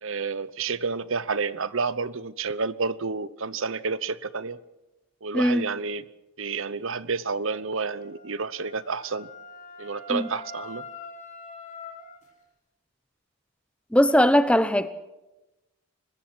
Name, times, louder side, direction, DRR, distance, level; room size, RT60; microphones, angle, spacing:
voice 1, 0.0-4.6 5.2-6.1 6.4-9.3 9.8-10.8, right 4 dB, 65° right, 0.8 m, -30 dB
voice 2, 5.3-5.7 10.1-10.3 13.9-14.9, equal, 5° left, 0.8 m, -20 dB
Wind instrument woodwind instrument, 7.5-12.2, left 3 dB, 35° left, 4.7 m, -44 dB
25.0 x 21.5 x 6.2 m
head